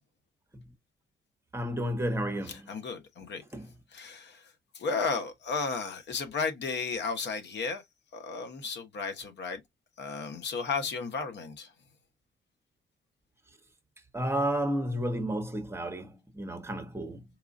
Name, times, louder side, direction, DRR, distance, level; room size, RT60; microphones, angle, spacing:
voice 1, 1.5-2.6 3.5-3.6 14.1-17.2, right 1 dB, 15° right, 1.0 m, -31 dB
voice 2, 2.4-3.4 3.9-7.8 8.1-9.6 10.0-11.7, left 4 dB, 60° left, 1.1 m, -34 dB
4.6 x 2.4 x 2.5 m
cardioid pair, 90°, 20 cm